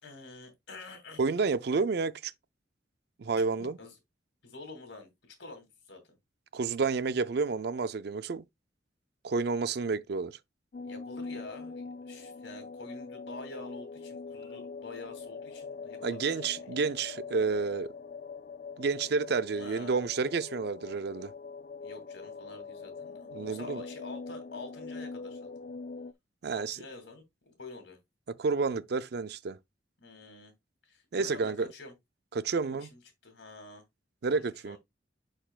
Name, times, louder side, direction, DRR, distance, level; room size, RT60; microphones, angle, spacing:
voice 1, 0.0-1.2 3.6-3.9 4.4-6.2 10.8-16.2 16.6-16.7 19.5-20.0 21.8-25.6 26.5-28.0 30.0-30.5 30.8-31.9 32.6-33.8 34.3-34.8, left 3 dB, 65° left, 2.5 m, -47 dB
voice 2, 1.2-2.3 3.2-3.8 6.5-8.4 9.2-10.4 16.0-17.9 18.8-21.3 23.3-23.8 26.4-26.8 28.3-29.6 31.1-31.7 32.3-32.9 34.2-34.8, right 4 dB, 60° right, 0.4 m, -30 dB
sound 1, 10.7-26.1, left 4 dB, 45° left, 0.4 m, -43 dB
10.0 x 4.5 x 2.3 m
head